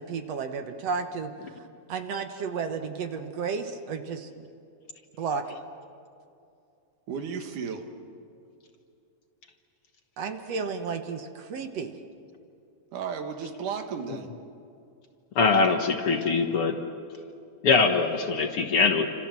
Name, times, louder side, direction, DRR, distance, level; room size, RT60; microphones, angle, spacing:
voice 1, 0.0-1.5 1.9-4.4 5.2-5.4 10.2-11.9, right 5 dB, 60° right, 7 dB, 2.2 m, -32 dB
voice 2, 7.1-7.9 12.9-14.3, right 6 dB, 80° right, 6 dB, 3.2 m, -34 dB
voice 3, 15.4-16.8 17.6-19.1, left 4 dB, 55° left, 5 dB, 1.9 m, -22 dB
29.0 x 27.0 x 7.6 m, 2.6 s
omnidirectional pair, 3.6 m